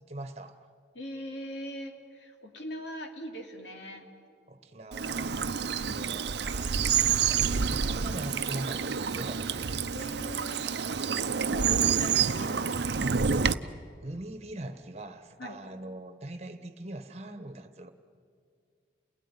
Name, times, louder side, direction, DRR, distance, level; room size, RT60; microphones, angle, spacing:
voice 1, 0.1-0.6 4.5-5.5 5.9-6.7 7.1-9.7 14.0-17.9, right 1 dB, 35° right, 9 dB, 1.3 m, -41 dB
voice 2, 0.9-4.1 5.7-6.3 9.9-13.3 15.4-15.6, equal, 75° left, 3 dB, 2.8 m, -41 dB
Bird vocalization bird call bird song / Stream, 4.9-13.5, right 6 dB, 70° right, 0.6 m, -28 dB
28.5 x 17.0 x 9.9 m, 2.3 s
head